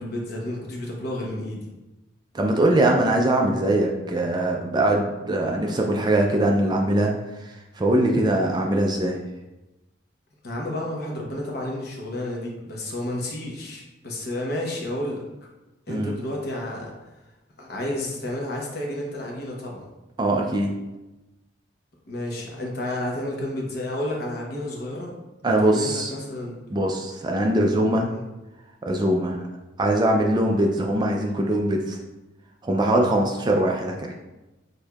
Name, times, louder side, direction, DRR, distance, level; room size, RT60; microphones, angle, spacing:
voice 1, 0.0-1.7 10.4-15.2 15.9-16.9 17.6-19.8 22.1-25.1 25.6-26.5 27.9-28.3, left 1 dB, 55° left, -1 dB, 0.9 m, -31 dB
voice 2, 2.3-9.2 15.9-16.1 20.2-20.8 25.4-26.1 26.7-28.1 28.8-29.4 29.8-32.0 32.6-34.1, right 1 dB, 20° right, 1 dB, 0.3 m, -22 dB
6.4 x 2.7 x 2.3 m, 1.0 s
head